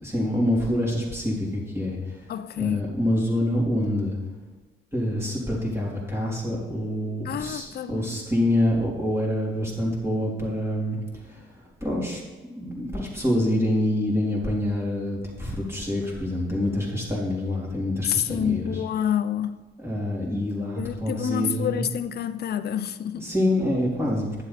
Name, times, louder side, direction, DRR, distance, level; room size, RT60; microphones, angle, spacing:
voice 1, 0.0-2.2 2.5-4.2 4.9-11.5 11.8-12.2 12.5-18.8 19.8-21.9 23.2-24.4, left 1 dB, 10° right, 3.6 m, -26 dB
voice 2, 2.3-2.9 7.2-8.1 18.0-19.6 20.8-23.3, left 9 dB, 55° left, 0.6 m, -28 dB
11.0 x 7.3 x 4.2 m
cardioid pair, 90°, 20 cm